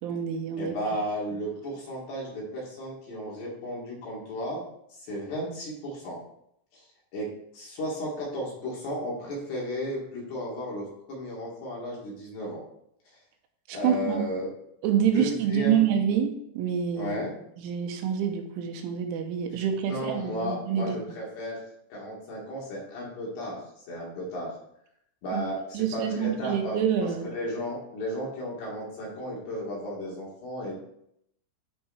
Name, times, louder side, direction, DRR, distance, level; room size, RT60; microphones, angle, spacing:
voice 1, 0.0-0.8 13.7-14.2 14.8-17.2 17.6-21.0 25.3-25.4 25.7-27.3, right 8 dB, 85° right, 5 dB, 3.4 m, -27 dB
voice 2, 0.6-4.6 4.9-6.2 6.7-6.9 7.1-12.6 13.7-14.5 15.1-15.9 17.0-17.3 19.8-21.6 21.9-24.6 25.2-26.8 27.2-30.7, equal, 60° left, -4 dB, 4.3 m, -34 dB
11.5 x 4.8 x 4.3 m, 0.76 s
omnidirectional pair, 5.6 m